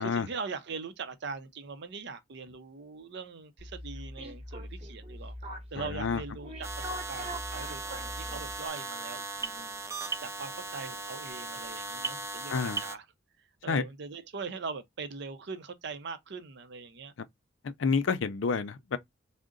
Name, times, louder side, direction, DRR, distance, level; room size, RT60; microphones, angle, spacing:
voice 1, 0.0-5.3 5.7-9.8 10.2-13.1 13.6-17.1, right 4 dB, 65° right, 0.6 m, -41 dB
sound 1, 3.6-8.7, equal, 35° right, 0.9 m, -41 dB
voice 2, 5.8-6.2 12.5-12.8 13.7-13.8 17.6-19.0, left 5 dB, 80° left, 0.5 m, -29 dB
sound 2, 6.6-13.0, right 3 dB, 15° right, 0.4 m, -38 dB
3.6 x 2.1 x 3.7 m
head